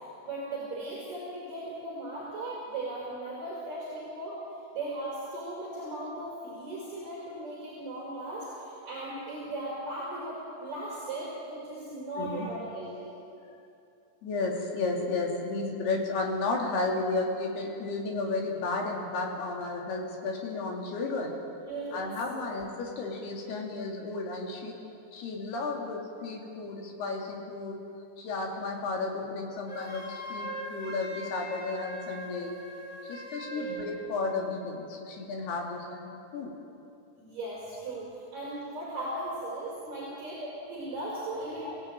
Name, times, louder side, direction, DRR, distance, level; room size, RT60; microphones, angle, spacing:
voice 1, 0.0-4.4 4.7-13.1 21.7-22.5 33.5-33.7 37.1-41.7, right 1 dB, 50° right, -5 dB, 6.7 m, -37 dB
voice 2, 12.2-12.6 14.2-21.4 21.9-24.7 25.1-27.8 28.2-32.6 33.0-36.6 41.6-41.8, left 3 dB, 70° left, 0 dB, 4.7 m, -33 dB
Wind instrument woodwind instrument, 29.7-33.9, right 1 dB, 25° left, 6.7 m, -40 dB
27.5 x 16.5 x 9.0 m, 2.7 s
omnidirectional pair, 4.9 m